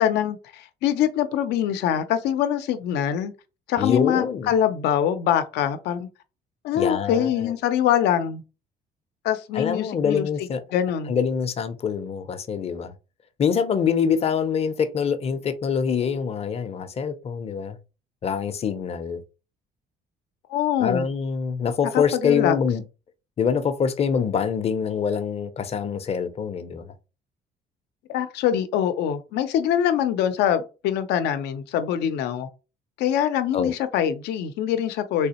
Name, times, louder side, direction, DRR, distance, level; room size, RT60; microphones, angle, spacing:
voice 1, 0.0-3.3 3.7-6.1 6.6-8.4 9.2-10.3 10.7-11.1 20.5-21.1 21.9-22.5 28.1-32.5 33.0-35.3, left 10 dB, 80° left, 0.6 m, -24 dB
voice 2, 3.8-4.5 6.7-7.5 9.5-10.6 11.1-12.9 13.4-17.8 18.2-19.2 20.8-22.8 23.4-26.9 33.5-33.7, left 6 dB, 35° left, 0.6 m, -25 dB
3.4 x 3.0 x 2.9 m
cardioid pair, 110°, 17 cm